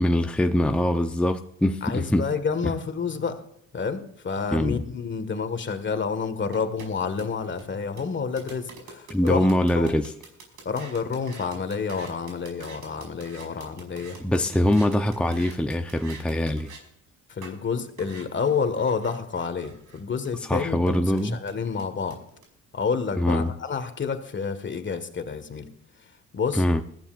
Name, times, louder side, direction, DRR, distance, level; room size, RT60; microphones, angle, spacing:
voice 1, 0.0-2.2 2.6-2.7 4.5-4.8 9.1-10.1 14.2-16.7 20.5-21.4 23.2-23.5 26.5-26.8, left 1 dB, 5° left, 5 dB, 0.8 m, -23 dB
voice 2, 1.8-3.4 3.7-10.0 10.7-14.2 17.3-22.2 22.7-25.7 26.3-26.6, left 5 dB, 40° left, 9 dB, 1.8 m, -29 dB
sound 1, 6.5-16.8 17.4-17.5 18.0-22.4, right 4 dB, 75° right, 5.4 m, -46 dB
21.5 x 14.0 x 2.6 m, 0.73 s
cardioid pair, 90°, 30 cm